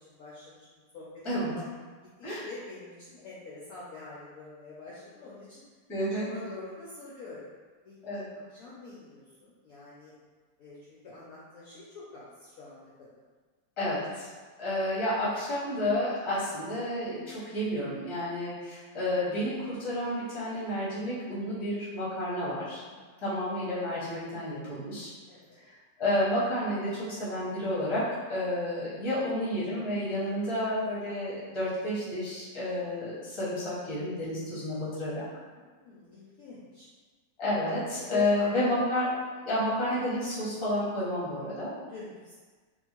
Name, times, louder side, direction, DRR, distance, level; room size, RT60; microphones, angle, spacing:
voice 1, 0.1-0.6 0.9-1.0 1.3-1.6 2.4-5.6 6.1-7.4 7.8-8.2 8.5-10.1 10.6-13.2 22.9-23.0 25.3-25.6 35.5-36.9 37.9-38.8 41.8-42.3, left 3 dB, 70° left, -7 dB, 0.8 m, -45 dB
voice 2, 5.9-6.3 8.0-8.2 13.8-14.3 14.6-22.8 23.2-25.1 26.0-35.2 37.4-39.1 39.4-41.7, left 1 dB, 25° left, -10 dB, 0.7 m, -30 dB
2.7 x 2.4 x 2.9 m, 1.4 s
omnidirectional pair, 1.9 m